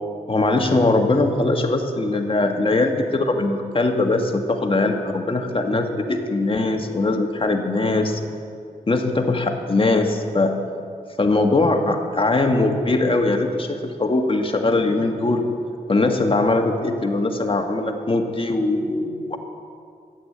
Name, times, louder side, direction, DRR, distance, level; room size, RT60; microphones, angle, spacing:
voice 1, 0.3-8.2 8.9-10.6 11.2-15.5 15.9-19.4, left 2 dB, 35° left, 4 dB, 1.7 m, -21 dB
13.5 x 8.3 x 9.6 m, 2.4 s
cardioid pair, 60°, 16 cm